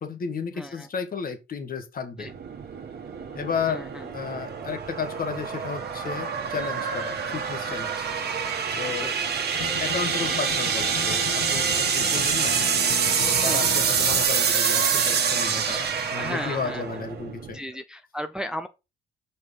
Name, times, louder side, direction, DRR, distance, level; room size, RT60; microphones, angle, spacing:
voice 1, 0.0-2.3 3.3-3.8 4.1-8.1 8.7-9.1 9.6-12.6 13.3-17.6, left 6 dB, 45° left, 1.4 m, -33 dB
voice 2, 0.5-0.9 2.2-2.3 3.7-4.1 9.0-9.1 13.4-13.8 16.1-16.8 17.5-18.7, equal, 5° right, 0.5 m, -35 dB
sound 1, 2.2-17.6, right 6 dB, 55° right, 1.3 m, -26 dB
sound 2, 9.6-14.3, left 5 dB, 75° left, 2.0 m, -36 dB
5.4 x 4.5 x 5.1 m
cardioid pair, 90°, 20 cm